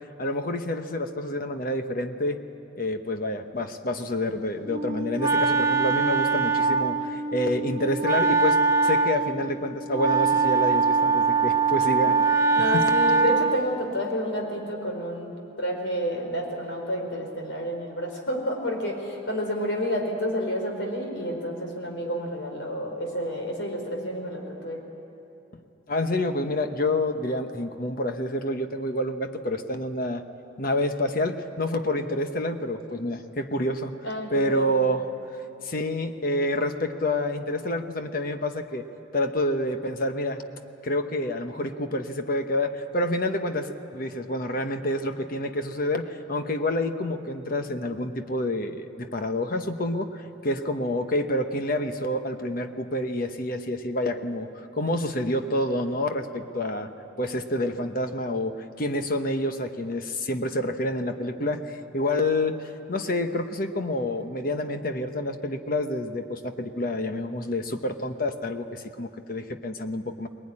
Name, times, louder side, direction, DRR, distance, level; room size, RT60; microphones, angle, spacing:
voice 1, 0.2-2.4 2.7-12.2 12.7-12.8 25.9-30.2 30.6-33.9 34.3-35.0 35.6-38.9 39.1-40.4 40.8-54.5 54.8-56.9 57.2-70.3, left 1 dB, 45° left, 7 dB, 1.1 m, -28 dB
Wind instrument woodwind instrument, 4.7-13.8, right 4 dB, 15° right, 0.6 m, -23 dB
voice 2, 12.5-24.8 34.0-34.6, equal, 70° left, 2 dB, 4.6 m, -30 dB
21.0 x 20.0 x 9.9 m, 2.9 s
head